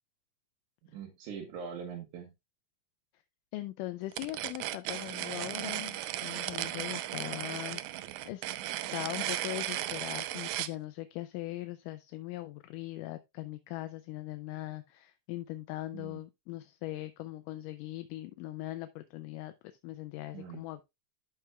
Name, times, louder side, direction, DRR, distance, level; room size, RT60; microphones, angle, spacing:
voice 1, 0.8-2.3 15.9-16.2 20.3-20.6, right 7 dB, 70° right, 2.8 m, -42 dB
voice 2, 3.5-8.4 8.9-20.8, left 16 dB, 80° left, 2.1 m, -40 dB
sound 1, 4.1-10.7, right 14 dB, 85° right, 1.6 m, -36 dB
12.0 x 5.9 x 2.3 m
omnidirectional pair, 3.8 m